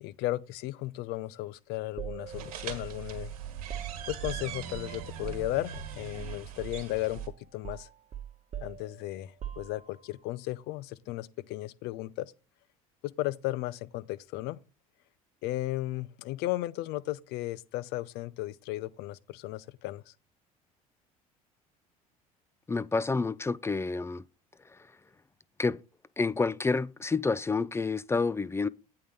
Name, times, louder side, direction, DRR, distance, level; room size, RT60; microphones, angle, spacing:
voice 1, 0.0-3.3 4.1-7.2 7.5-7.9 8.6-12.3 13.0-14.6 15.4-20.1, left 17 dB, 60° left, 0.6 m, -35 dB
sound 1, 2.0-6.4 6.7-6.9 7.2-10.1, right 9 dB, 40° right, 1.1 m, -43 dB
sound 2, 2.3-7.3, right 9 dB, 75° right, 1.5 m, -41 dB
voice 2, 22.7-24.2 24.7-24.8 25.6-25.8 26.2-28.7, left 4 dB, 15° left, 0.4 m, -29 dB
8.7 x 3.8 x 6.4 m
hypercardioid pair, 65°, 19 cm